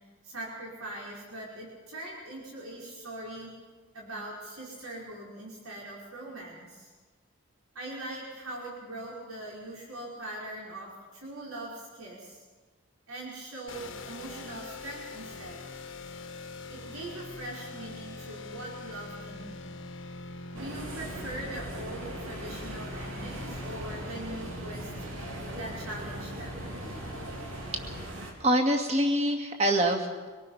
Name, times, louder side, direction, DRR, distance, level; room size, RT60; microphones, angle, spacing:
voice 1, 0.2-3.5 3.9-6.9 7.8-12.4 13.1-15.7 16.7-19.7 20.5-24.9 25.5-26.8, right 1 dB, 85° right, -4 dB, 5.3 m, -41 dB
sound 1, 13.7-28.0, left 2 dB, 65° left, 1.5 m, -43 dB
sound 2, 20.5-28.3, right 1 dB, 70° right, 3.4 m, -40 dB
voice 2, 28.4-30.3, right 1 dB, 30° right, 3 dB, 2.1 m, -25 dB
25.0 x 18.5 x 5.8 m, 1.4 s
head